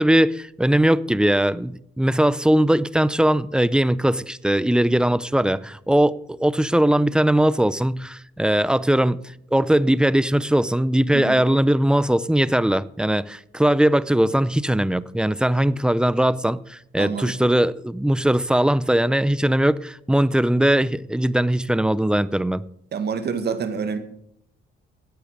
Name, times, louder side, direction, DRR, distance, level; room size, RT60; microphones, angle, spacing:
voice 1, 0.0-9.2 9.5-22.6, right 1 dB, 5° right, 0.5 m, -20 dB
voice 2, 17.0-17.4 22.9-24.0, right 6 dB, 55° right, 1.8 m, -27 dB
13.5 x 8.5 x 6.5 m
cardioid pair, 90°, 20 cm